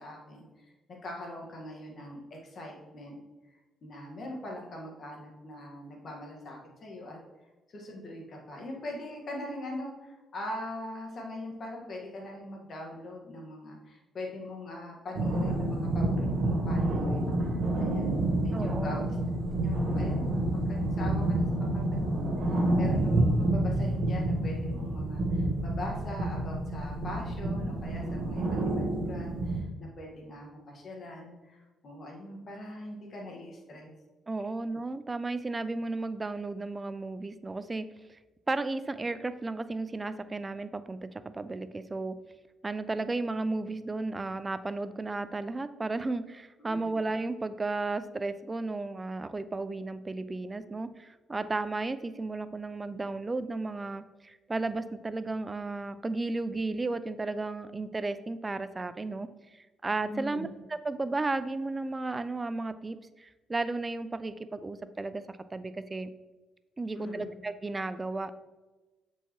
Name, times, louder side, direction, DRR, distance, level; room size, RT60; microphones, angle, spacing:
voice 1, 0.0-3.2 3.8-7.2 7.7-19.1 19.6-21.5 21.7-33.9 46.6-46.8 60.1-60.5 66.9-67.3, left 1 dB, 50° left, 0 dB, 1.6 m, -42 dB
sound 1, 15.1-29.6, right 1 dB, 55° right, 1.0 m, -28 dB
voice 2, 18.5-19.2 34.3-38.2 38.5-42.1 42.6-66.1 66.8-68.3, right 3 dB, 25° right, 13 dB, 0.4 m, -34 dB
6.8 x 4.5 x 3.0 m, 1.2 s
cardioid pair, 90°, 0 cm